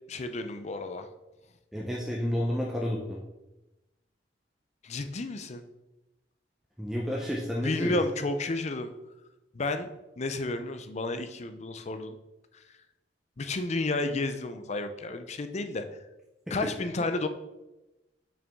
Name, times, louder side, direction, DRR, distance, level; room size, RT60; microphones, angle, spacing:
voice 1, 0.1-1.1 4.8-5.6 7.6-8.9 9.5-9.9 10.2-12.2 13.4-15.8 16.5-17.3, left 2 dB, 40° left, 9 dB, 0.5 m, -31 dB
voice 2, 1.7-3.2 6.8-8.0, equal, ahead, -3 dB, 0.7 m, -30 dB
6.3 x 5.9 x 3.6 m, 1.0 s
head